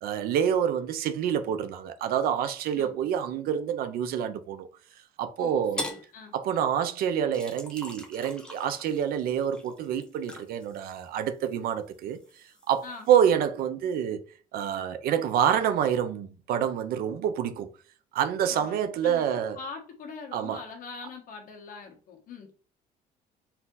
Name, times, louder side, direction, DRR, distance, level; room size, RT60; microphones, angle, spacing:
voice 1, 0.0-4.7 5.2-5.8 6.3-12.2 12.7-14.2 14.5-17.7 18.1-19.6 20.3-20.6, right 9 dB, 70° right, 0.6 m, -27 dB
voice 2, 5.4-6.3 12.8-13.1 18.5-19.2 19.5-22.5, left 5 dB, 60° left, 1.3 m, -42 dB
sound 1, 5.8-6.1 7.3-11.6 11.9-13.3, left 1 dB, 5° left, 0.8 m, -41 dB
4.2 x 2.8 x 3.8 m
cardioid pair, 155°, 16 cm